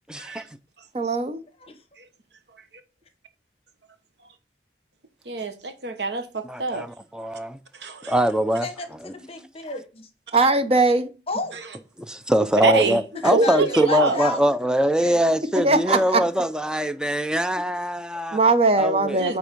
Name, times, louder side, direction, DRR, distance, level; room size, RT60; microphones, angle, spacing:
voice 1, 0.1-0.4 6.5-7.6 8.1-8.7 9.0-9.1 12.0-18.4 18.8-19.2, equal, 5° right, 0.4 m, -23 dB
voice 2, 0.9-1.4 10.3-11.1 15.6-16.2 18.3-19.4, right 3 dB, 35° right, 0.7 m, -20 dB
voice 3, 5.2-6.9 7.7-8.1 11.5-11.6 12.6-13.0 13.3-14.2 19.2-19.4, right 3 dB, 70° right, 1.1 m, -25 dB
voice 4, 8.1-10.1 11.3-11.6 13.2-14.4 14.8-15.3, left 3 dB, 35° left, 0.9 m, -33 dB
9.5 x 3.4 x 5.2 m
head